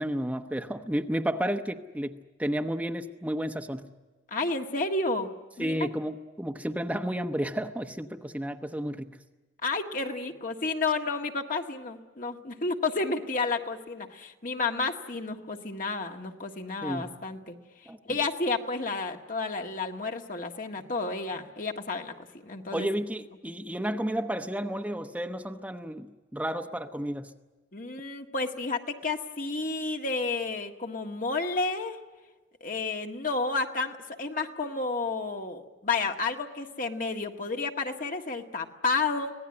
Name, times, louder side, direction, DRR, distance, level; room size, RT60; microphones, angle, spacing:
voice 1, 0.0-3.9 5.6-9.2 16.8-17.1 17.9-18.2 22.7-27.3, equal, 10° right, 5 dB, 0.9 m, -32 dB
voice 2, 4.3-5.3 5.6-5.8 9.6-17.5 18.0-22.1 22.4-22.9 27.7-32.0 32.6-39.3, left 3 dB, 50° left, 3 dB, 1.7 m, -31 dB
25.5 x 18.0 x 9.8 m, 1.2 s
head